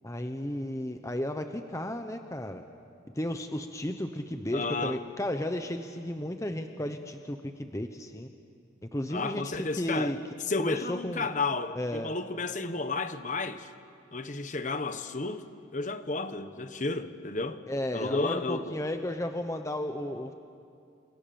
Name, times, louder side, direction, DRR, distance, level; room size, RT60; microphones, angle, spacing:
voice 1, 0.0-2.6 3.2-8.3 8.9-10.2 10.6-11.3 11.8-12.1 17.7-20.3, left 1 dB, 15° left, 0.9 m, -33 dB
voice 2, 4.5-5.0 9.1-10.1 10.5-13.7 14.1-15.5 15.7-17.6 17.9-18.8, left 3 dB, 40° left, 1.1 m, -32 dB
30.0 x 28.0 x 7.0 m
head